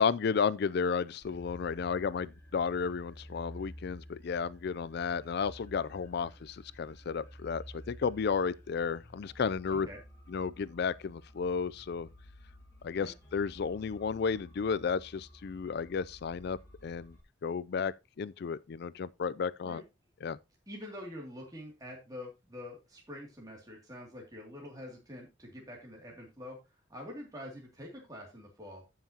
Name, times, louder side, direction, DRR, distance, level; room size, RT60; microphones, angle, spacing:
voice 1, 0.0-9.9 10.3-12.1 12.8-16.6 16.8-17.2 17.4-19.8 20.2-20.4, left 6 dB, 55° left, 0.4 m, -33 dB
sound 1, 1.2-17.2, equal, 15° left, 2.9 m, -52 dB
voice 2, 20.7-26.6 26.9-28.8, left 1 dB, 20° right, 2.5 m, -46 dB
14.5 x 5.8 x 2.8 m
head